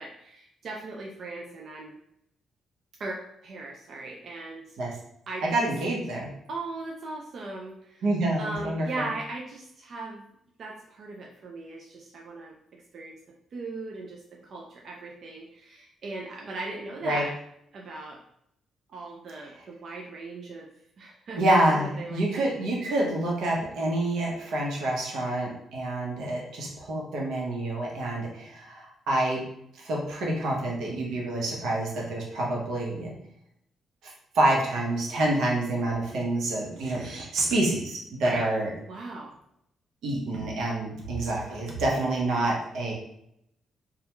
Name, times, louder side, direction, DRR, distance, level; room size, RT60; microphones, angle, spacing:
voice 1, 0.0-2.0 3.0-4.7 5.3-5.7 6.5-8.0 8.4-10.3 10.6-12.5 12.9-13.2 13.5-17.3 17.7-18.2 18.9-20.7 21.0-22.5 38.2-38.5 38.9-39.3, right 2 dB, 45° right, -1 dB, 0.3 m, -38 dB
voice 2, 5.4-6.3 8.0-9.1 17.0-17.2 21.4-29.4 29.8-33.1 34.3-38.7 40.0-42.9, right 1 dB, 80° right, -2 dB, 0.8 m, -27 dB
2.3 x 2.1 x 2.9 m, 0.75 s
cardioid pair, 150°, 0 cm